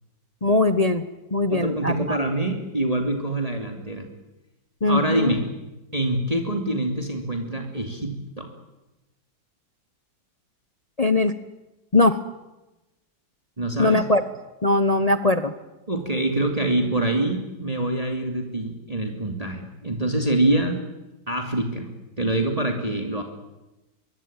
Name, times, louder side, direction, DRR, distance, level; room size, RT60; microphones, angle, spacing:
voice 1, 0.4-1.0 1.3-2.2 4.8-5.3 11.0-11.3 11.9-12.2 13.8-14.2 14.6-15.5, left 2 dB, 30° left, 11 dB, 0.7 m, -20 dB
voice 2, 1.5-4.1 4.9-5.5 5.9-8.5 13.6-14.0 15.9-20.8 21.3-21.9 22.2-23.2, right 1 dB, 20° right, 4 dB, 2.7 m, -25 dB
25.0 x 22.0 x 9.0 m, 1.0 s
omnidirectional pair, 2.1 m